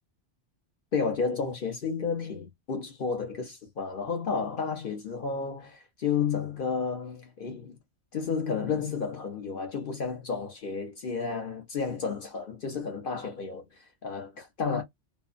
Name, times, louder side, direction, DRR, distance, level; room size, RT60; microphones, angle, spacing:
voice 1, 0.9-7.8 8.1-14.8, left 5 dB, 50° left, 0.8 m, -32 dB
2.6 x 2.1 x 2.4 m
omnidirectional pair, 1.2 m